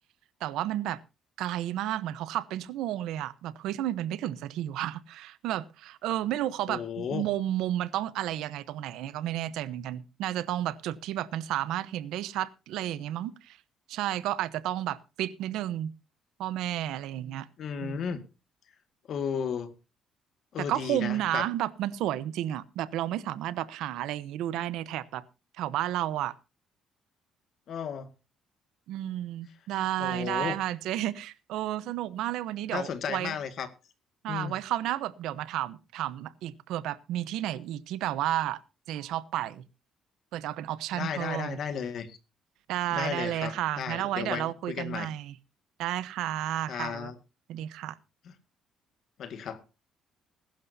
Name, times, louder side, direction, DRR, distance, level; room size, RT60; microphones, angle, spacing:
voice 1, 0.4-1.0 1.4-13.6 13.9-15.9 16.4-17.5 17.8-18.0 20.6-25.2 25.6-26.3 28.9-33.3 34.2-38.6 38.9-39.6 40.3-41.6 42.7-45.3 45.8-47.1 47.5-48.0, right 13 dB, 85° right, 0.9 m, -32 dB
voice 2, 6.7-7.2 17.6-18.2 19.1-19.7 20.5-21.5 27.7-28.1 30.0-30.6 32.7-33.7 34.3-34.6 40.9-42.2 42.9-45.1 46.7-47.1 49.2-49.6, left 7 dB, 50° left, 2.0 m, -34 dB
21.0 x 11.5 x 2.8 m
cardioid pair, 160°, 0 cm